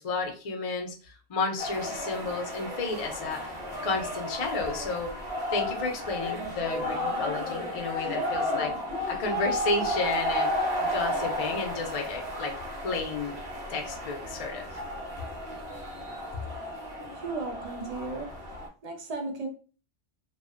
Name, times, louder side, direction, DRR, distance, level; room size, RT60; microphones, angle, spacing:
voice 1, 0.0-3.5 3.8-5.2 5.5-8.8 9.1-10.5 10.8-12.6 12.8-13.3 13.7-14.7, left 3 dB, 60° left, 0.3 m, -32 dB
sound 1, 1.6-18.7, left 1 dB, 40° right, 0.9 m, -33 dB
voice 2, 17.2-18.3 18.8-19.5, right 3 dB, 60° right, 0.4 m, -35 dB
2.5 x 2.1 x 2.4 m
omnidirectional pair, 1.2 m